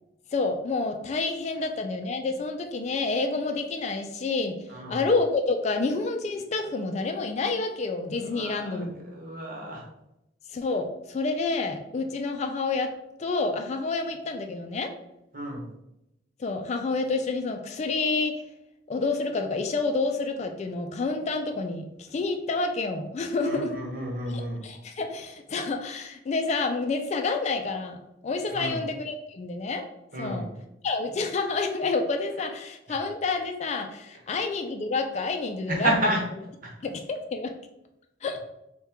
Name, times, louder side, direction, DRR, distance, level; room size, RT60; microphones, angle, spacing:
voice 1, 0.3-4.6 4.9-9.0 10.5-12.9 13.2-14.9 16.4-18.4 18.9-23.8 24.3-28.0 28.2-29.9 30.2-30.5 30.8-35.9 36.8-37.5 38.2-38.4, left 3 dB, 35° left, 5 dB, 0.3 m, -28 dB
voice 2, 4.7-5.0 8.1-9.8 15.3-15.7 23.4-24.6 28.5-28.8 30.1-30.5 32.9-33.0 34.3-34.4 35.7-36.2 36.6-36.7, right 1 dB, 50° right, -1 dB, 1.0 m, -31 dB
3.5 x 2.2 x 4.3 m, 0.86 s
head